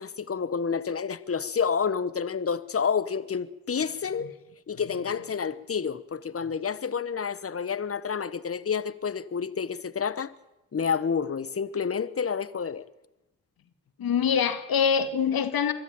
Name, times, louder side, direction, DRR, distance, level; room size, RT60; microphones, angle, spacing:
voice 1, 0.0-4.3 4.7-10.3 10.7-12.8, left 6 dB, 40° left, 1.2 m, -29 dB
voice 2, 14.0-15.7, left 7 dB, 70° left, 1.9 m, -24 dB
23.5 x 13.5 x 8.8 m
supercardioid pair, 40°, 37 cm